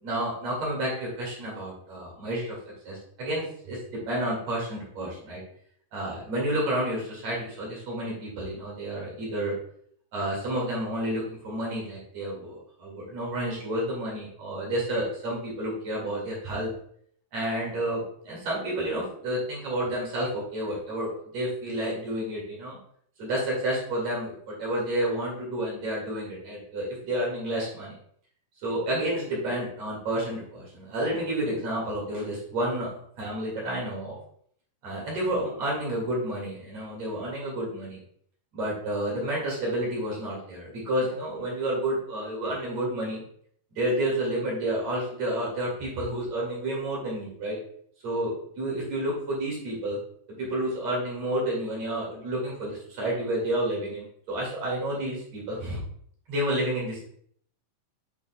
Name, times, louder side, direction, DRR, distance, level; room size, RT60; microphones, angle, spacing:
voice 1, 0.0-2.6 2.8-3.8 4.1-5.4 5.9-9.6 10.1-16.7 17.3-22.8 23.2-27.9 28.6-34.2 34.8-38.0 38.5-43.2 43.7-47.6 48.0-50.0 50.4-55.8 56.3-57.1, right 1 dB, 50° right, -4 dB, 3.1 m, -30 dB
8.7 x 5.2 x 2.3 m, 0.63 s
omnidirectional pair, 4.1 m